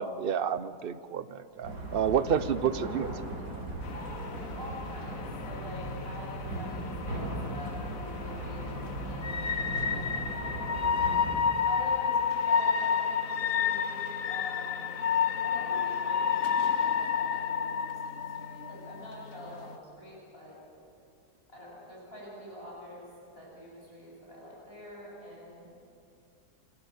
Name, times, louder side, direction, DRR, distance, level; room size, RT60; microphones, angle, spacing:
voice 1, 0.0-3.1, right 8 dB, 50° right, 14 dB, 0.7 m, -29 dB
sound 1, 1.6-11.4, right 1 dB, 90° right, 6.9 m, -38 dB
sound 2, 3.8-19.8, left 7 dB, 60° left, 1.3 m, -31 dB
voice 2, 3.9-10.9 11.7-14.9 15.4-20.6 21.5-25.7, left 1 dB, 35° left, -4 dB, 8.1 m, -46 dB
29.0 x 25.0 x 7.5 m, 2.5 s
omnidirectional pair, 1.8 m